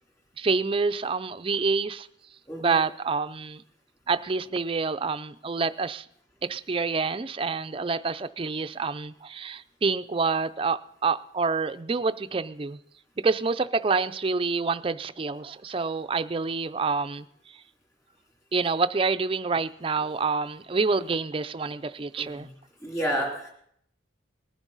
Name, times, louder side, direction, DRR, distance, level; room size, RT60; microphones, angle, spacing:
voice 1, 0.4-2.1 2.6-3.6 4.1-6.1 6.4-12.8 13.2-17.3 18.5-22.5, right 4 dB, 30° right, 12 dB, 0.4 m, -27 dB
voice 2, 22.8-23.5, right 1 dB, 15° left, -1 dB, 2.8 m, -30 dB
19.5 x 11.0 x 4.0 m, 0.69 s
head